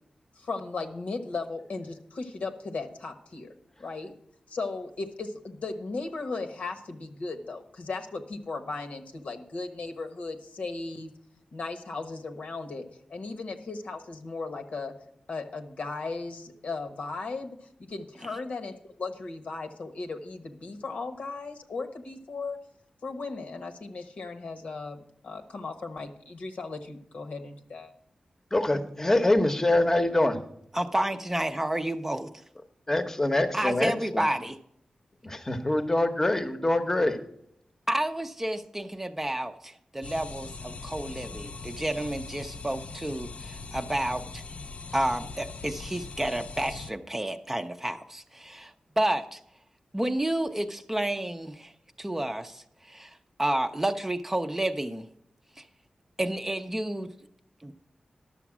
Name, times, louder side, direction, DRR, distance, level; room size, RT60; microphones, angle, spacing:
voice 1, 0.4-3.5 3.8-4.1 4.5-11.1 11.5-14.9 15.3-22.6 23.0-27.9, left 3 dB, 75° left, 5 dB, 1.1 m, -36 dB
voice 2, 28.5-30.4 32.9-34.2 35.2-37.2, left 1 dB, 20° left, 7 dB, 0.9 m, -24 dB
voice 3, 30.7-32.3 33.5-34.6 37.9-44.4 44.9-49.4 49.9-51.7 52.0-55.1 55.6-55.7 56.2-57.1 57.6-57.7, right 1 dB, 15° right, 7 dB, 0.5 m, -30 dB
sound 1, 40.0-46.9, left 4 dB, 60° left, 0.4 m, -41 dB
11.0 x 7.0 x 6.0 m, 0.73 s
wide cardioid pair, 105°, 2 cm